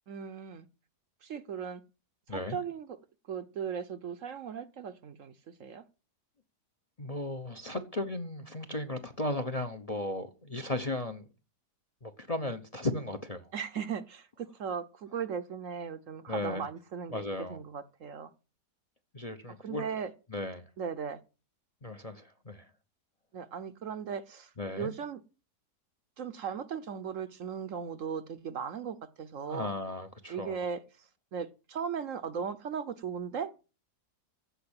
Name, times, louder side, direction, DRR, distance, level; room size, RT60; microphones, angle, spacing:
voice 1, 0.1-0.7 1.2-1.8 2.3-3.0 3.3-5.8 13.5-17.2 17.5-18.3 19.6-20.1 20.8-21.2 23.3-24.5 24.8-25.2 26.2-29.7 30.3-33.5, right 7 dB, 60° right, 1.0 m, -37 dB
voice 2, 7.0-11.3 12.0-13.5 16.3-16.7 17.1-17.6 19.1-19.9 20.3-20.7 21.8-22.7 24.6-24.9 29.5-30.6, left 2 dB, 30° left, 0.8 m, -36 dB
15.0 x 5.4 x 8.7 m
omnidirectional pair, 1.7 m